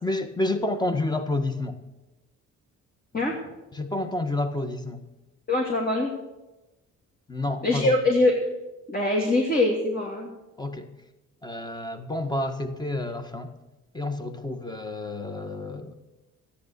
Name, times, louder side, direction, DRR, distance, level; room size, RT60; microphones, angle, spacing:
voice 1, 0.0-1.8 3.7-5.1 7.3-7.9 10.6-10.9 11.4-13.5 13.9-15.9, left 2 dB, 15° left, 9 dB, 1.6 m, -29 dB
voice 2, 5.5-6.1 7.6-8.4 8.9-10.3, left 2 dB, 30° left, -1 dB, 2.9 m, -23 dB
13.5 x 10.0 x 6.8 m, 1.0 s
cardioid pair, 90°, 30 cm